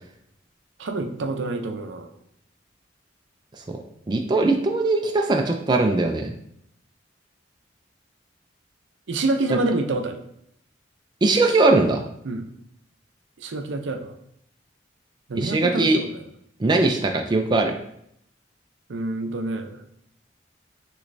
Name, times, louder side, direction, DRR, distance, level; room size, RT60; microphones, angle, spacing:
voice 1, 0.8-2.1 9.1-10.2 12.2-12.5 13.4-14.1 15.3-16.2 18.9-19.8, right 2 dB, 70° right, 6 dB, 0.5 m, -27 dB
voice 2, 4.1-6.3 9.5-9.6 11.2-12.0 15.3-16.0 16.6-17.7, right 2 dB, 20° right, 3 dB, 0.3 m, -20 dB
6.3 x 3.1 x 2.6 m, 0.74 s
head